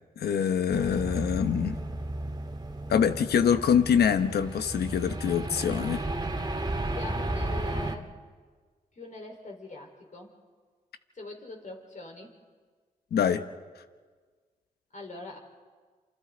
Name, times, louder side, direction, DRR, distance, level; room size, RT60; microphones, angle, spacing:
voice 1, 0.2-1.8 2.9-6.0 13.1-13.4, left 8 dB, 85° left, 10 dB, 1.0 m, -25 dB
sound 1, 0.7-8.0, right 1 dB, 25° right, 2.0 m, -33 dB
voice 2, 6.9-8.1 9.0-10.3 11.1-12.3 14.9-15.4, left 2 dB, 50° left, 1 dB, 4.4 m, -42 dB
28.0 x 25.5 x 3.9 m, 1.5 s
supercardioid pair, 45°, 16 cm